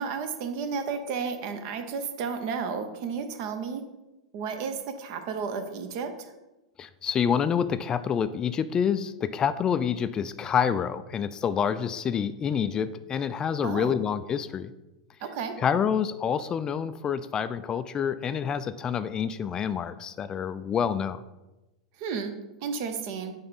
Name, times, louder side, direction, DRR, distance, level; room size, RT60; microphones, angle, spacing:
voice 1, 0.0-3.8 4.3-6.3 13.6-13.9 15.2-15.5 22.0-22.3 22.6-23.3, right 5 dB, 50° right, 8 dB, 0.8 m, -32 dB
voice 2, 6.8-14.7 15.6-21.2, left 7 dB, 25° left, 12 dB, 0.3 m, -27 dB
9.2 x 3.4 x 4.1 m, 1.0 s
figure-of-eight pair, 90°, 3 cm